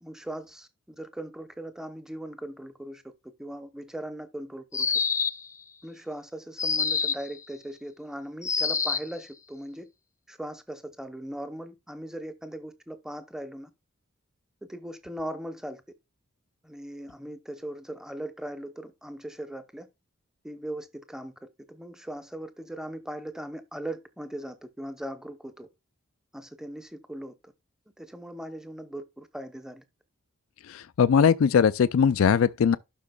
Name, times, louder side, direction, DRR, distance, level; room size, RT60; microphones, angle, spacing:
voice 1, 0.0-4.9 5.8-9.9 10.3-13.7 14.7-15.8 16.6-19.9 20.4-25.7 26.3-27.5 28.0-29.8, right 1 dB, 5° right, 0.9 m, -39 dB
sound 1, 4.7-5.5 6.6-7.3 8.4-9.1, left 5 dB, 15° left, 0.4 m, -26 dB
voice 2, 30.6-32.8, left 7 dB, 80° left, 0.4 m, -21 dB
12.0 x 6.1 x 2.3 m
head